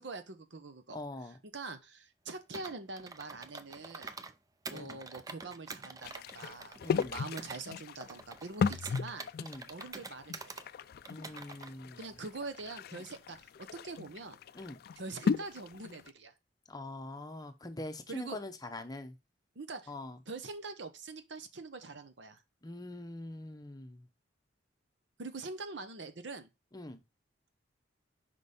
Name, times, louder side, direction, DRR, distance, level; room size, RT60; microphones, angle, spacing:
voice 1, 0.0-1.0 1.5-4.1 4.7-9.3 9.7-10.5 12.0-14.4 15.0-16.3 18.1-18.4 19.5-19.9 20.3-22.4 25.2-26.5, right 3 dB, 70° right, 0.9 m, -44 dB
voice 2, 0.9-1.4 4.7-5.0 6.8-7.2 9.4-9.7 11.1-12.1 14.5-14.8 16.7-19.2 19.9-20.2 22.6-24.1 26.7-27.0, left 2 dB, 20° left, 0.7 m, -43 dB
Computer keyboard, 2.5-4.3 4.7-7.6 8.0-10.7 11.1-11.7, right 4 dB, 20° right, 0.4 m, -46 dB
sound 1, 6.0-16.1, left 5 dB, 55° left, 0.3 m, -37 dB
5.2 x 5.2 x 4.1 m
head